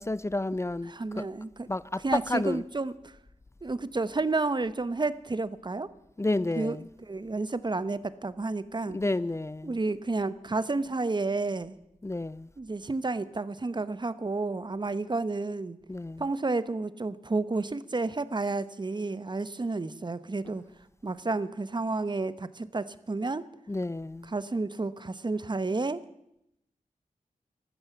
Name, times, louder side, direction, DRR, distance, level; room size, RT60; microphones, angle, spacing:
voice 1, 0.0-1.3 1.7-2.6 6.2-6.9 8.9-9.8 12.0-12.5 15.9-16.2 23.7-24.3, left 2 dB, 20° left, 0.5 m, -31 dB
voice 2, 0.9-1.7 2.0-3.1 3.6-5.9 6.6-6.8 7.1-9.0 9.6-11.7 12.6-15.8 16.2-20.6 21.0-23.4 24.3-26.0, right 3 dB, 35° right, 0.9 m, -31 dB
15.0 x 12.5 x 7.3 m
wide cardioid pair, 70°, 14 cm